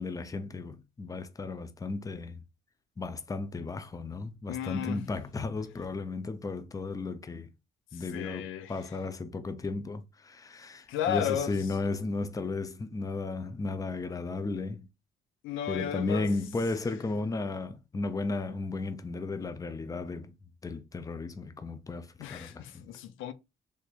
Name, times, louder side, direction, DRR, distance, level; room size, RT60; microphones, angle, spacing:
voice 1, 0.0-2.4 3.0-7.5 7.9-14.9 15.7-20.3 20.6-22.9, left 3 dB, 15° left, 0.5 m, -34 dB
voice 2, 4.5-5.0 7.9-8.7 10.9-11.6 11.9-12.0 15.4-16.3 22.2-23.3, left 9 dB, 90° left, 0.5 m, -34 dB
3.3 x 2.9 x 2.4 m
cardioid pair, 90°, 20 cm